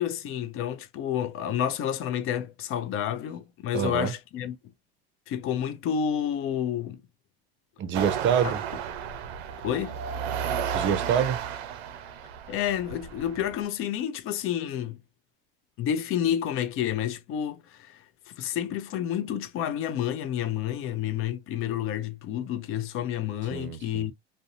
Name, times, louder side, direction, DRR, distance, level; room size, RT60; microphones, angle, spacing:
voice 1, 0.0-4.6 5.3-7.0 8.4-8.5 9.6-10.0 12.5-15.0 15.8-24.1, left 10 dB, 45° left, 0.5 m, -30 dB
voice 2, 3.7-4.1 7.8-8.6 10.7-11.4 23.5-24.1, right 8 dB, 40° right, 0.5 m, -26 dB
sound 1, 7.9-13.7, right 8 dB, 85° right, 0.5 m, -33 dB
2.5 x 2.1 x 2.7 m
supercardioid pair, 95°, 31 cm